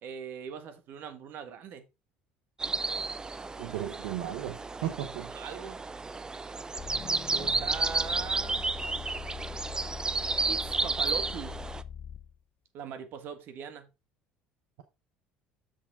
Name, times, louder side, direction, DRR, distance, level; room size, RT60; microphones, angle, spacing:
voice 1, 0.0-1.8 5.3-5.8 7.3-8.7 10.5-11.6 12.7-13.9, right 7 dB, 60° right, 1.6 m, -40 dB
sound 1, 2.6-11.8, right 3 dB, 20° right, 0.5 m, -32 dB
voice 2, 3.6-5.3, right 12 dB, 75° right, 0.8 m, -35 dB
sound 2, 6.8-12.4, left 8 dB, 45° left, 0.5 m, -42 dB
7.1 x 6.6 x 3.6 m
hypercardioid pair, 75°, 4 cm